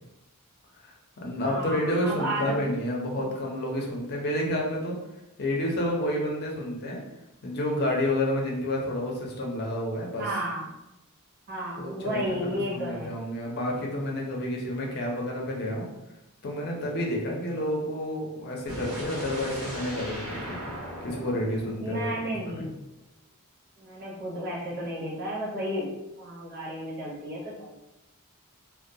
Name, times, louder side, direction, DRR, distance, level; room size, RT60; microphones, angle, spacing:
voice 1, 0.8-5.0 5.4-7.0 7.4-10.2 11.8-12.2 12.7-15.9 16.4-20.6 21.0-22.1 22.4-22.7, left 1 dB, 45° left, -1 dB, 0.5 m, -30 dB
voice 2, 1.4-2.6 10.2-10.8 11.5-13.1 21.8-22.7 23.8-25.9 26.2-27.7, equal, 45° right, -5 dB, 0.7 m, -32 dB
sound 1, 18.7-22.6, equal, 90° right, 0.9 m, -38 dB
2.2 x 2.1 x 2.6 m, 0.93 s
head